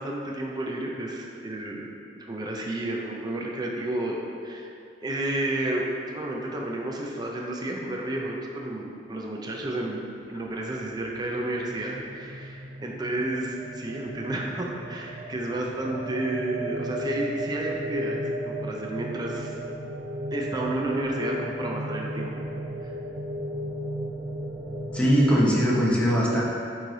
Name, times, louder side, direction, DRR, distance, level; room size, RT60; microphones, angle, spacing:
voice 1, 0.0-1.9 2.2-4.7 5.0-19.6 20.3-22.3 22.8-22.9, right 1 dB, 25° right, -1 dB, 0.5 m, -31 dB
sound 1, 9.9-25.8, right 1 dB, 75° right, 0.7 m, -35 dB
voice 2, 24.9-26.4, equal, 5° left, -6 dB, 1.0 m, -21 dB
8.3 x 3.2 x 4.0 m, 2.5 s
head